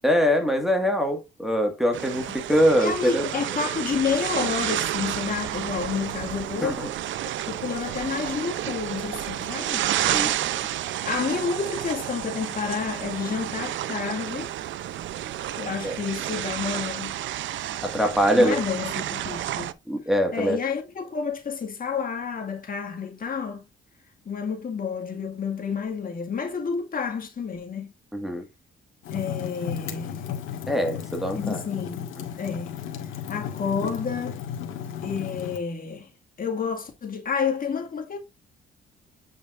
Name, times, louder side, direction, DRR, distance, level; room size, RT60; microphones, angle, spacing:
voice 1, 0.0-3.2 6.6-6.9 10.0-10.3 15.8-15.9 17.8-18.6 19.9-20.6 28.1-28.4 30.7-31.6, equal, ahead, 1.8 m, -23 dB
sound 1, 1.9-19.7, right 12 dB, 75° right, 0.7 m, -30 dB
voice 2, 2.3-6.8 7.2-9.9 11.1-14.5 15.6-17.2 18.3-19.7 20.3-23.6 24.3-27.9 29.1-30.2 31.4-32.1 32.4-32.7 33.3-34.4 35.0-36.1 36.4-38.2, left 6 dB, 45° left, 2.1 m, -30 dB
Fire, 29.0-35.6, left 9 dB, 90° left, 2.0 m, -34 dB
9.2 x 5.0 x 2.6 m
cardioid pair, 90°, 20 cm